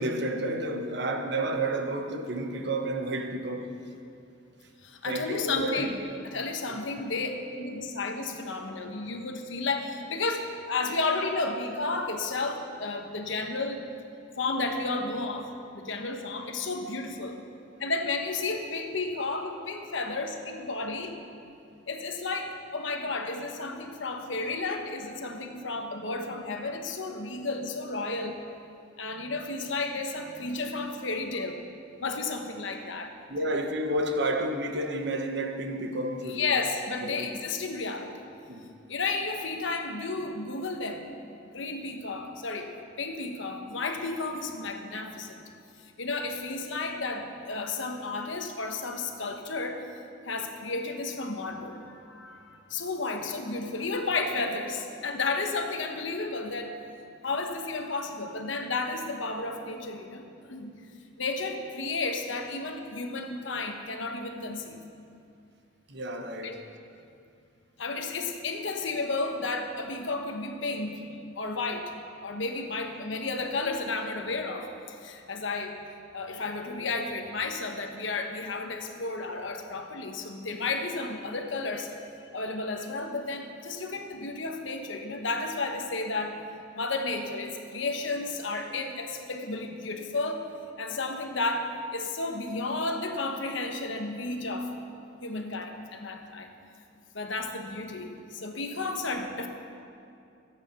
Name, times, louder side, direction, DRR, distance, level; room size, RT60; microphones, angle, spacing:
voice 1, 0.0-3.7 5.0-6.2 6.7-6.8 7.1-7.2 33.3-36.6 37.0-37.4 38.5-38.7 65.9-66.6 98.8-98.9, right 1 dB, 55° right, 1.1 m, -31 dB
voice 2, 4.8-13.9 14.4-17.4 17.8-21.2 21.9-28.4 29.0-31.6 32.0-33.1 36.3-38.2 38.9-41.1 41.5-45.4 45.8-49.9 50.2-56.8 57.2-60.7 61.2-64.8 66.4-66.6 67.8-71.9 72.2-75.8 76.1-81.9 82.3-86.4 86.7-90.5 90.8-94.7 95.2-96.5 97.1-99.5, left 3 dB, 70° left, 1.1 m, -32 dB
14.0 x 8.9 x 5.8 m
head